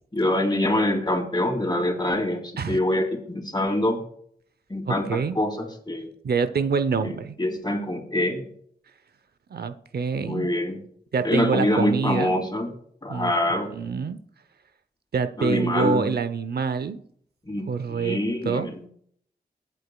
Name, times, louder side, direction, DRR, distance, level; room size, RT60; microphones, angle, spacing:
voice 1, 0.1-4.0 4.7-6.1 7.0-8.4 10.3-10.8 11.2-12.7 13.0-13.7 15.4-16.1 17.5-18.9, left 1 dB, 25° left, 3 dB, 2.7 m, -25 dB
voice 2, 4.9-5.4 6.2-7.4 9.5-10.5 11.1-12.3 13.1-14.2 15.1-17.0 17.7-18.2 18.4-18.7, right 5 dB, 70° right, 11 dB, 0.7 m, -26 dB
20.0 x 8.2 x 2.3 m, 0.63 s
cardioid pair, 65°, 17 cm